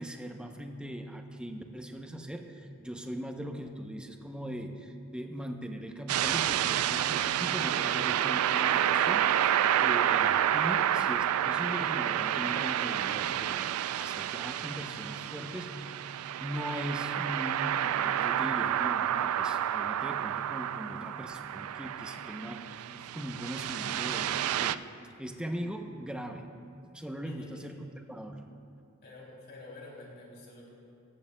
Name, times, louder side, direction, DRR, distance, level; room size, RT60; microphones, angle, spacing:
voice 1, 0.0-24.8 25.2-26.5 26.9-28.5, equal, 5° right, 4 dB, 0.6 m, -40 dB
sound 1, 6.1-24.8, right 11 dB, 80° right, 0.3 m, -29 dB
voice 2, 27.2-27.8 29.0-30.7, left 2 dB, 50° left, -3 dB, 3.0 m, -49 dB
16.5 x 14.0 x 2.2 m, 2.5 s
head